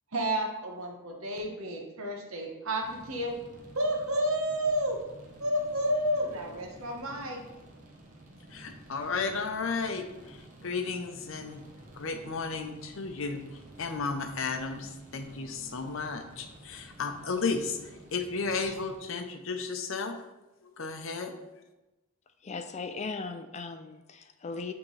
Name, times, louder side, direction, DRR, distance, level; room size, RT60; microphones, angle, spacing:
voice 1, 0.1-3.3 3.7-5.0 5.4-7.4, equal, 75° right, 2 dB, 1.1 m, -30 dB
sound 1, 2.8-19.0, right 1 dB, 35° right, 0.8 m, -52 dB
voice 2, 8.5-11.6 11.9-20.2 20.6-21.3, left 4 dB, 65° left, 6 dB, 0.6 m, -34 dB
voice 3, 22.4-24.7, left 4 dB, 30° left, 8 dB, 0.3 m, -38 dB
8.7 x 3.6 x 3.2 m, 1.0 s
head